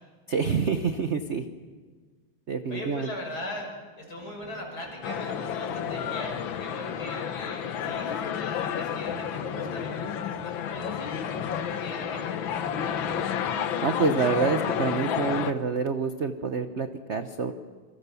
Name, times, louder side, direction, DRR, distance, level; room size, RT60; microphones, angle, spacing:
voice 1, 0.3-1.4 2.5-3.1 13.8-17.5, right 5 dB, 50° right, 8 dB, 0.9 m, -27 dB
voice 2, 2.7-12.4, left 1 dB, 50° left, 0 dB, 6.7 m, -40 dB
sound 1, 4.2-14.0, equal, 15° right, 4.6 m, -46 dB
sound 2, 5.0-15.5, left 8 dB, 70° left, 1.8 m, -31 dB
27.0 x 24.5 x 7.0 m, 1.5 s
omnidirectional pair, 2.2 m